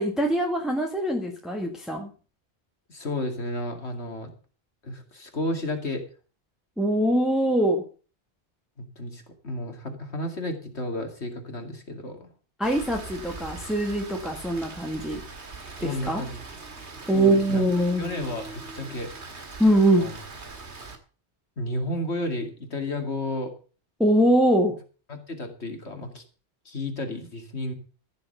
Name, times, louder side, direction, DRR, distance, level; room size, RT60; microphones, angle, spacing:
voice 1, 0.0-2.1 6.8-7.8 12.6-15.2 15.8-16.2 17.1-18.1 19.6-20.1 24.0-24.8, right 1 dB, ahead, 1 dB, 1.7 m, -23 dB
voice 2, 2.9-4.3 4.8-6.0 8.8-12.3 15.8-16.4 17.1-17.7 18.0-19.1 20.0-20.2 21.6-23.5 25.1-26.2 26.6-27.7, left 1 dB, 75° left, 5 dB, 2.8 m, -32 dB
Rain, 12.6-21.0, right 3 dB, 80° right, 2.3 m, -41 dB
14.5 x 7.0 x 6.8 m, 0.37 s
omnidirectional pair, 1.1 m